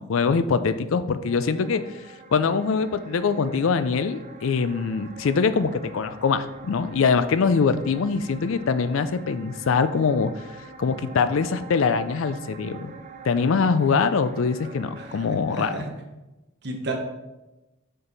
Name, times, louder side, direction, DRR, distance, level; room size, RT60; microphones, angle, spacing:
voice 1, 0.0-1.8 2.3-10.3 10.8-12.9 13.2-15.8, left 5 dB, 70° left, 12 dB, 0.4 m, -23 dB
sound 1, 1.2-15.3, right 4 dB, 35° right, 0.5 m, -45 dB
voice 2, 14.9-15.9 16.6-16.9, right 2 dB, 50° right, 2 dB, 1.1 m, -33 dB
6.4 x 4.5 x 4.0 m, 1.0 s
head